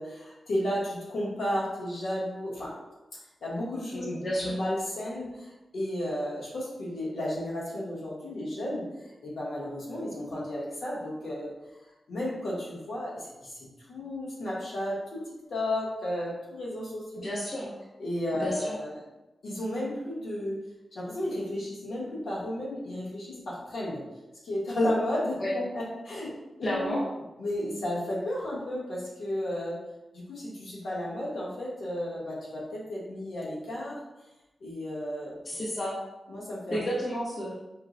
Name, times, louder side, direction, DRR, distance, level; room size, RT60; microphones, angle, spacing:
voice 1, 0.0-2.7 3.4-4.0 4.3-8.9 9.2-11.5 12.1-15.2 15.5-17.3 18.0-19.0 19.4-20.6 20.9-24.0 24.4-26.4 26.7-27.0 27.4-29.8 30.1-34.0 34.6-35.4 36.3-36.8, left 1 dB, 90° left, -6 dB, 1.0 m, -33 dB
voice 2, 3.9-4.6 17.1-17.7 18.3-18.8 25.4-25.5 26.6-27.0 35.4-35.9 36.7-37.5, equal, 50° left, -5 dB, 0.6 m, -31 dB
4.3 x 2.0 x 2.5 m, 1.0 s
wide cardioid pair, 110°, 0 cm